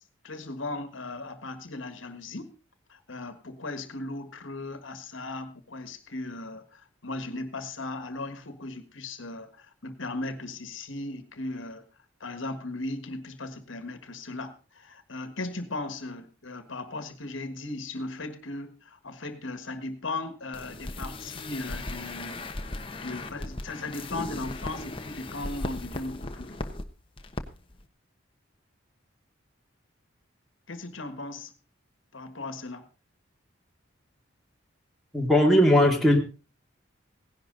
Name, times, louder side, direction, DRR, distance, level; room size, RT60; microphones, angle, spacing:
voice 1, 0.2-2.5 2.9-11.8 12.2-22.5 23.0-26.6 30.7-31.5 32.1-32.9, left 2 dB, 70° left, 1.6 m, -37 dB
sound 1, 20.5-26.8 27.2-27.4 27.7-27.8, left 2 dB, 25° left, 1.1 m, -37 dB
voice 2, 35.1-36.2, left 1 dB, ahead, 2.5 m, -19 dB
17.0 x 11.0 x 3.9 m
head